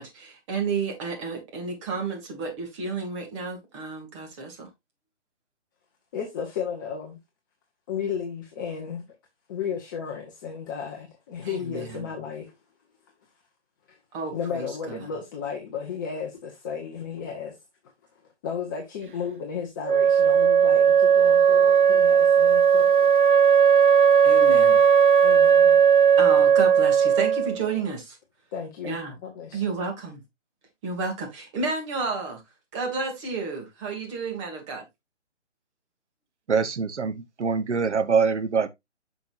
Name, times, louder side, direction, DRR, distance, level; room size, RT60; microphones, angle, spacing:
voice 1, 0.0-4.7 11.4-12.1 14.1-15.0 24.2-24.8 26.2-28.2 28.8-29.1 29.5-30.2 30.8-32.4 32.7-34.8, right 4 dB, 25° right, 2.6 m, -31 dB
voice 2, 6.1-7.2 7.9-9.0 9.5-12.6 13.9-14.0 14.3-17.6 18.4-23.1 25.2-25.8 28.5-29.6, left 7 dB, 15° left, 0.9 m, -34 dB
Wind instrument woodwind instrument, 19.9-27.6, right 7 dB, 50° right, 0.4 m, -17 dB
voice 3, 36.5-38.7, right 5 dB, 75° right, 1.1 m, -24 dB
9.1 x 6.1 x 2.5 m
figure-of-eight pair, 150°, 36 cm